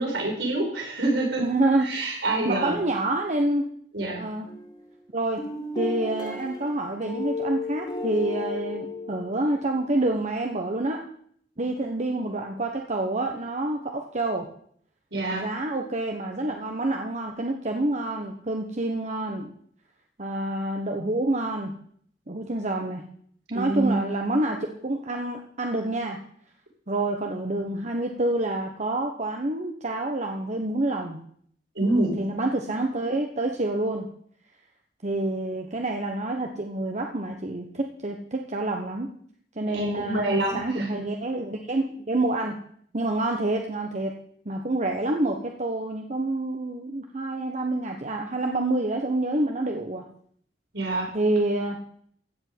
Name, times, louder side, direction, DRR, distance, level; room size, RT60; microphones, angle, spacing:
voice 1, 0.0-1.4 1.8-2.8 3.9-4.3 15.1-15.5 23.5-24.1 31.8-32.2 39.7-40.9 50.7-51.1, right 2 dB, 70° right, 0 dB, 5.5 m, -26 dB
voice 2, 1.4-3.7 4.2-4.5 5.1-5.4 5.8-11.0 11.6-14.5 15.3-19.5 20.2-21.7 22.3-23.1 23.5-24.6 24.8-26.2 26.9-31.2 32.2-34.1 35.0-39.1 39.6-42.5 42.9-44.1 44.4-50.0 51.1-51.8, right 2 dB, 40° right, 3 dB, 1.2 m, -27 dB
sound 1, 4.5-4.9 5.4-9.7, left 2 dB, 25° left, 2.8 m, -33 dB
15.0 x 5.5 x 9.2 m, 0.63 s
head